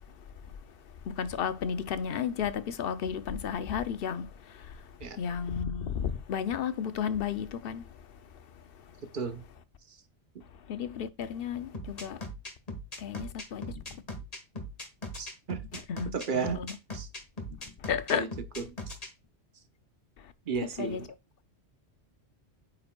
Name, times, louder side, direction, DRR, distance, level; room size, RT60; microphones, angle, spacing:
voice 1, 1.0-8.3 8.6-9.0 10.7-12.2 13.0-13.8 15.9-16.1 16.4-16.7 17.8-18.3 20.2-20.3 20.8-21.0, left 7 dB, 60° left, 0.8 m, -33 dB
sound 1, 11.7-19.1, left 1 dB, 35° left, 1.5 m, -39 dB
voice 2, 15.2-17.1 18.1-18.3 18.6-18.7 20.5-21.1, right 6 dB, 50° right, 0.9 m, -34 dB
8.5 x 5.2 x 2.3 m
omnidirectional pair, 1.2 m